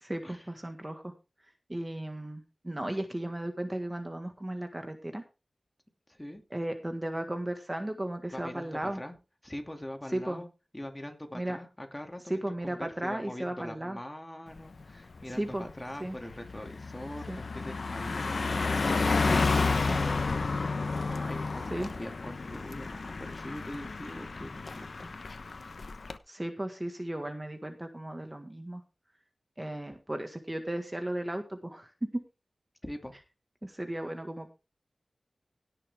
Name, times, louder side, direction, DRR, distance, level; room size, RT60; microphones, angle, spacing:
voice 1, 0.1-1.1 1.7-5.2 6.5-9.0 10.1-10.4 11.3-11.6 12.3-14.0 15.4-15.6 16.0-16.2 17.3-17.4 19.9-20.0 21.7-21.9 26.3-28.8 29.6-31.9 33.6-34.5, right 1 dB, 20° right, 6 dB, 1.7 m, -35 dB
voice 2, 6.1-6.4 8.3-9.2 9.4-10.5 10.7-25.1 32.8-33.2, left 1 dB, 15° left, 4 dB, 2.5 m, -43 dB
Car passing by, 14.6-14.8 15.2-26.2, left 4 dB, 70° left, 1.0 m, -31 dB
17.0 x 7.0 x 3.6 m, 0.30 s
wide cardioid pair, 65°, 0 cm